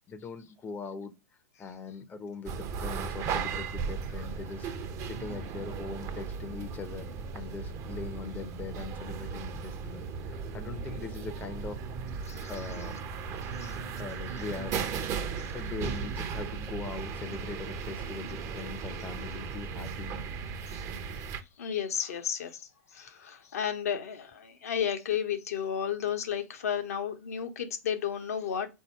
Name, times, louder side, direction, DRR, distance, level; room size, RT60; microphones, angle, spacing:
voice 1, 0.1-1.1 1.6-4.7 5.0-7.1 7.3-11.8 12.5-13.0 13.4-13.5 13.9-14.8 15.5-20.2, left 4 dB, 20° left, 0.6 m, -41 dB
sound 1, 2.4-21.4, right 5 dB, 40° right, 0.6 m, -36 dB
voice 2, 21.6-28.7, left 8 dB, 75° left, 0.8 m, -33 dB
4.1 x 2.7 x 4.5 m
hypercardioid pair, 105°, 8 cm